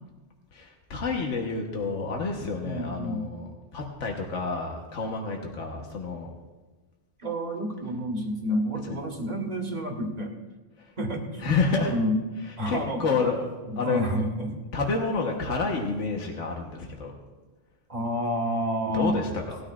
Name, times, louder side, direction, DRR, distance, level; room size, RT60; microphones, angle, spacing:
voice 1, 0.5-3.5 3.7-6.3 8.8-9.0 11.4-11.9 12.7-14.0 14.7-17.1 18.9-19.6, left 4 dB, 85° left, 1 dB, 1.5 m, -29 dB
voice 2, 2.6-3.2 7.2-10.3 11.0-11.5 11.7-12.2 12.6-13.2 13.7-14.5 17.9-19.2, equal, 35° right, 2 dB, 1.7 m, -29 dB
18.5 x 13.0 x 2.5 m, 1.2 s
omnidirectional pair, 1.2 m